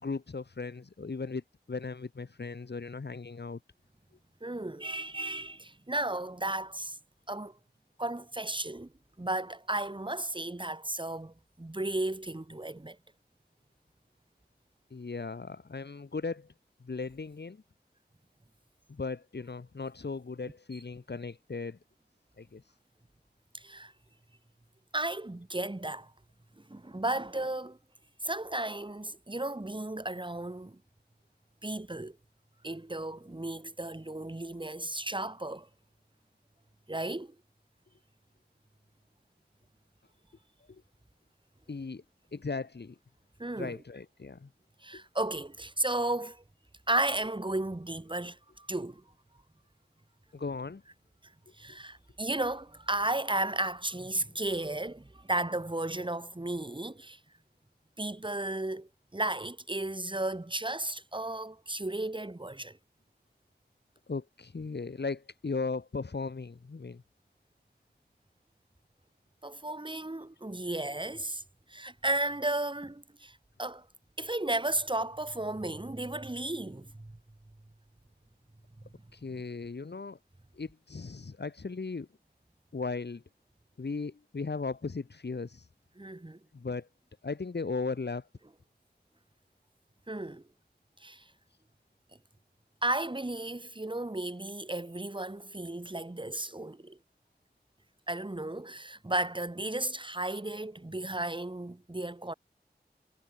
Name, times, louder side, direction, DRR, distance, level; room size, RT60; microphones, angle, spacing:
voice 1, 0.0-3.6 14.9-16.5 16.8-17.6 18.9-21.8 22.4-22.6 40.7-40.8 41.7-42.0 42.3-42.9 43.6-44.5 44.9-45.0 50.3-50.8 64.1-67.0 79.1-80.2 80.5-82.1 82.7-83.2 83.8-85.6 86.5-86.9 87.2-88.3, left 4 dB, 80° left, 3.3 m, -37 dB
voice 2, 4.4-7.0 7.3-7.6 8.0-8.9 9.2-13.0 20.7-20.8 23.5-23.9 24.9-26.1 26.6-27.8 28.2-30.8 31.6-32.2 32.6-35.7 36.9-37.3 43.4-43.8 44.8-46.4 46.9-49.0 51.2-51.3 51.6-57.2 58.0-62.8 69.4-71.4 71.7-73.9 74.2-77.2 86.0-86.4 90.1-90.4 91.0-91.3 92.8-97.0 98.1-102.3, right 2 dB, 30° right, 4.3 m, -34 dB
wide cardioid pair, 70°, 17 cm